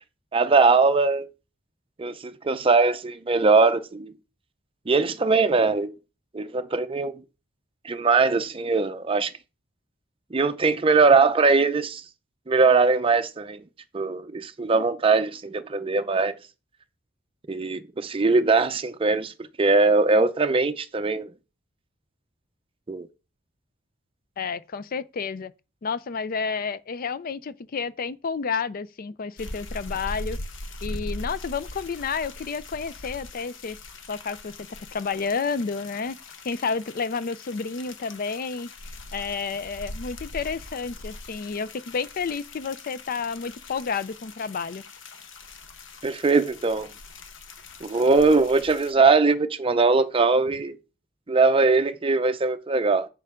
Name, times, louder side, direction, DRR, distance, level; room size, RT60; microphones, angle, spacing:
voice 1, 0.3-1.3 2.0-4.1 4.9-5.9 6.3-7.1 7.8-9.3 10.3-12.0 12.5-13.6 13.9-16.3 17.5-19.3 19.6-21.3 22.9-23.1 46.0-46.9 47.8-50.8 51.3-53.1, right 4 dB, 30° right, 0.6 m, -21 dB
voice 2, 24.4-25.5 25.8-30.4 30.8-33.8 34.1-34.5 34.9-36.2 36.4-38.7 39.1-44.8, left 5 dB, 50° left, 0.4 m, -30 dB
sound 1, 29.4-48.9, left 2 dB, 70° left, 1.0 m, -41 dB
7.5 x 6.7 x 3.7 m
head